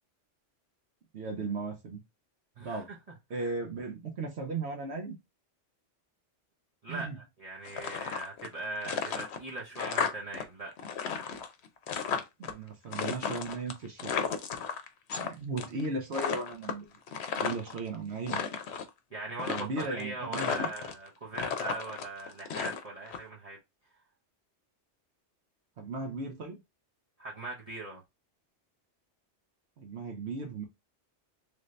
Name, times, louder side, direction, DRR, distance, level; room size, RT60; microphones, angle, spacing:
voice 1, 1.1-2.0 2.6-2.9 3.3-5.2 6.9-7.2 12.4-14.1 15.2-16.9 17.4-18.4 19.4-20.7 25.8-26.6 29.8-30.7, right 3 dB, 70° right, 1.1 m, -36 dB
voice 2, 2.6-3.0 3.3-3.5 6.8-10.7 19.1-23.6 27.2-28.0, right 2 dB, 40° right, 0.7 m, -40 dB
sound 1, 7.6-8.5 8.8-10.4 10.7-12.5 12.9-15.3 15.6-15.9 16.1-17.8 18.2-18.9 19.4-20.0 20.3-21.1 21.3-23.2, left 6 dB, 70° left, 0.9 m, -34 dB
3.2 x 2.6 x 3.1 m
omnidirectional pair, 1.2 m